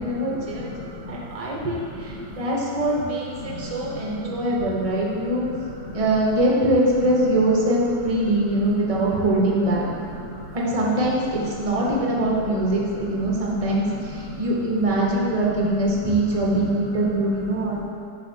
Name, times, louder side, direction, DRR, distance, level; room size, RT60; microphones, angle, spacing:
voice 1, 0.0-0.7 1.1-5.4 5.9-9.9 10.5-17.8, right 1 dB, 35° right, -3 dB, 0.6 m, -23 dB
voice 2, 0.7-1.2 1.5-1.7 1.9-2.3 3.4-4.6 4.9-5.0 5.4-5.5 5.9-6.0 10.1-10.5 13.3-14.4 15.6-15.7 16.0-16.1 17.7-17.8, left 1 dB, 45° left, -9 dB, 0.9 m, -37 dB
6.9 x 6.2 x 2.7 m, 2.5 s
omnidirectional pair, 1.8 m